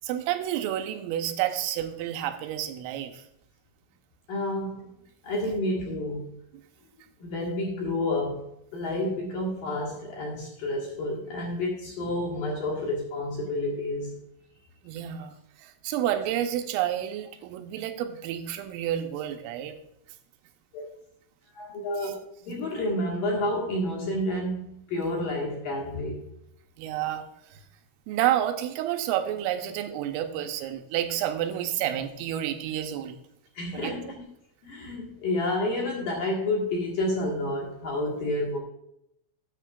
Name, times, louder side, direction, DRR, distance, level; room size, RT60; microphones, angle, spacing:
voice 1, 0.0-3.2 14.8-19.7 22.0-22.1 26.8-27.3 27.5-27.6 28.1-33.2 33.7-34.0, right 11 dB, 85° right, 6 dB, 3.4 m, -30 dB
voice 2, 4.3-4.9 5.2-6.2 7.2-8.5 8.7-14.2 20.7-20.8 21.5-22.2 22.5-26.2 33.5-34.1 34.6-38.6, left 1 dB, 60° left, -2 dB, 2.7 m, -29 dB
13.5 x 9.2 x 2.5 m, 0.77 s
omnidirectional pair, 5.8 m